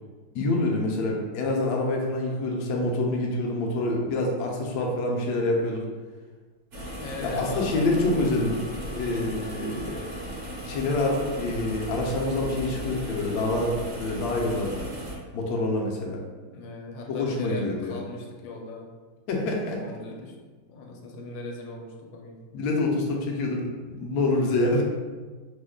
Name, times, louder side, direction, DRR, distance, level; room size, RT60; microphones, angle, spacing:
voice 1, 0.3-5.9 7.2-8.6 8.9-10.1 10.6-14.9 15.3-16.2 17.1-18.0 19.3-20.0 22.5-24.8, left 2 dB, 70° left, 0 dB, 1.0 m, -26 dB
sound 1, 6.7-15.1, equal, 50° right, 0.9 m, -36 dB
voice 2, 7.0-8.5 16.5-18.9 19.8-20.3 20.7-22.4, left 3 dB, 85° left, 0 dB, 1.3 m, -39 dB
3.1 x 2.2 x 3.5 m, 1.4 s
omnidirectional pair, 2.0 m